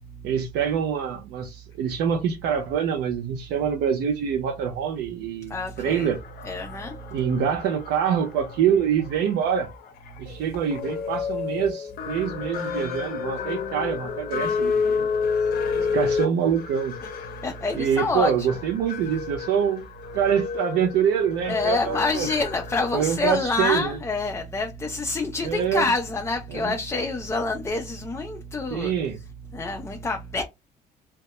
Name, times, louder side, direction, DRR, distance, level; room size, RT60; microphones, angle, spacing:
voice 1, 0.2-6.2 7.1-9.7 10.2-15.1 15.9-16.9 17.7-19.9 20.1-22.3 22.9-24.0 25.4-25.9 26.5-26.7 28.7-29.2, right 8 dB, 85° right, 0.5 m, -25 dB
voice 2, 5.5-6.1 6.4-6.9 15.8-16.0 17.4-18.5 21.5-28.9 29.5-30.4, left 3 dB, 15° left, 0.3 m, -27 dB
sound 1, 5.8-23.2, left 5 dB, 65° left, 0.6 m, -31 dB
2.2 x 2.0 x 2.8 m
cardioid pair, 110°, 17 cm